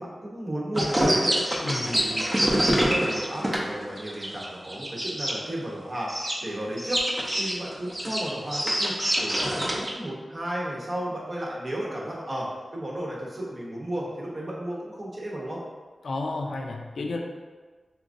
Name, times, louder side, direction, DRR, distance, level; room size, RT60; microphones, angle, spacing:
voice 1, 0.0-2.3 2.5-6.1 6.4-7.0 7.4-15.6, right 1 dB, 45° right, -4 dB, 0.8 m, -33 dB
sound 1, 0.7-5.3 6.1-6.3 6.8-9.9, equal, 20° right, 0.6 m, -25 dB
voice 2, 1.6-1.9 16.0-17.2, left 2 dB, 80° left, 1 dB, 0.4 m, -31 dB
3.6 x 2.9 x 2.5 m, 1.4 s
wide cardioid pair, 95°, 0 cm